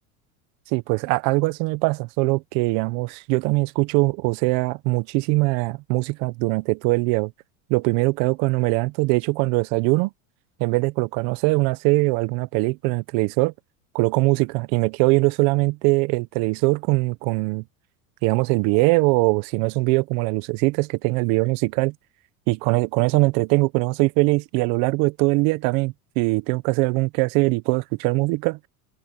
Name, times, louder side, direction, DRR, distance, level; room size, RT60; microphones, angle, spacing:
voice 1, 0.7-7.3 7.7-10.1 10.6-13.5 13.9-17.6 18.2-21.9 22.5-28.6, right 25 dB, 55° right, 1.0 m, -22 dB
open air
supercardioid pair, 140°, 42 cm